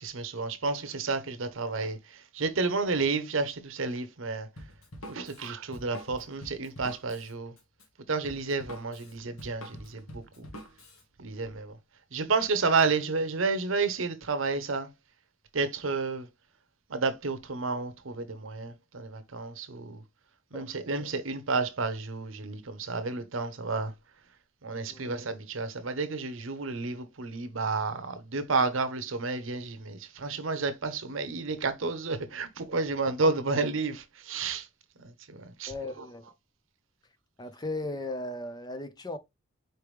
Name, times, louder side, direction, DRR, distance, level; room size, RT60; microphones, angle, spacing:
voice 1, 0.0-4.5 5.1-7.5 8.1-10.5 11.2-11.8 12.1-14.9 15.5-16.3 16.9-20.0 20.5-23.9 24.6-34.7 35.0-36.1, right 4 dB, 70° right, 0.8 m, -31 dB
Drum kit, 4.6-11.0, equal, 85° left, 1.5 m, -46 dB
voice 2, 24.9-25.2 35.7-36.3 37.4-39.2, left 2 dB, 20° left, 0.4 m, -37 dB
4.6 x 3.2 x 3.1 m
head